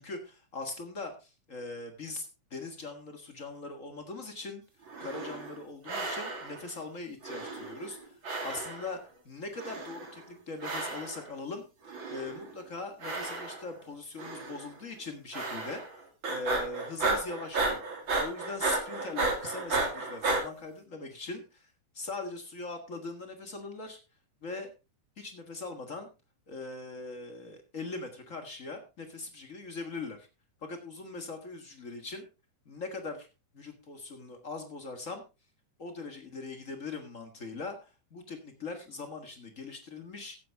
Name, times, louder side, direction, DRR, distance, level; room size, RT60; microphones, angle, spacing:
voice 1, 0.0-4.6 5.0-9.0 9.2-15.8 16.3-17.9 18.2-24.0 24.4-24.7 25.2-26.1 26.5-30.3 30.6-32.2 32.6-33.3 33.5-35.2 35.8-40.4, left 3 dB, 50° left, 5 dB, 0.9 m, -41 dB
sound 1, 4.9-5.6 5.9-6.7 7.2-8.0 8.2-9.0 9.6-10.2 10.6-11.3 11.9-12.5 13.0-13.8 14.2-14.7 15.3-16.0 16.2-20.4, right 3 dB, 35° right, 3.0 m, -33 dB
16.0 x 8.7 x 3.4 m, 0.29 s
omnidirectional pair, 3.9 m